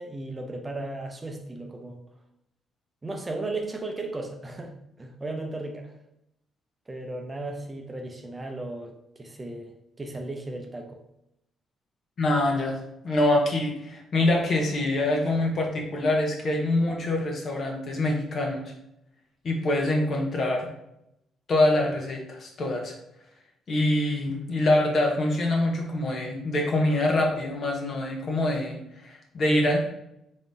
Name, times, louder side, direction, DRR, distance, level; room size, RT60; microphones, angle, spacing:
voice 1, 0.0-2.0 3.0-5.9 6.9-11.0, right 2 dB, 20° right, 3 dB, 0.6 m, -35 dB
voice 2, 12.2-12.8 13.0-18.7 19.4-20.7 21.5-22.9 23.7-29.8, left 1 dB, 55° left, 1 dB, 1.0 m, -25 dB
3.7 x 3.7 x 2.7 m, 0.81 s
cardioid pair, 90°, 0 cm